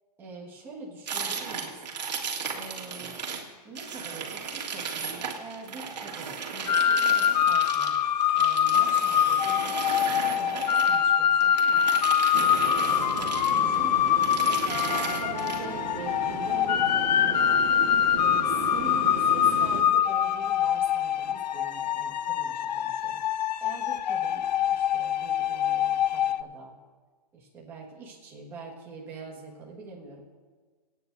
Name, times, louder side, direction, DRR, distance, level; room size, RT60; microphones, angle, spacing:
voice 1, 0.2-1.8 2.5-3.2 3.6-8.0 8.3-9.8 10.3-11.8 13.6-23.2 23.6-26.7 27.3-30.2, right 3 dB, 10° right, -5 dB, 1.8 m, -44 dB
sound 1, 1.1-3.4 3.7-11.0 11.4-13.8 14.1-15.6, right 6 dB, 80° right, 2.0 m, -35 dB
sound 2, 6.7-26.4, left 9 dB, 80° left, 0.5 m, -24 dB
sound 3, 12.3-19.8, right 6 dB, 50° right, 1.1 m, -36 dB
24.5 x 9.3 x 2.7 m, 1.5 s
hypercardioid pair, 175°, 21 cm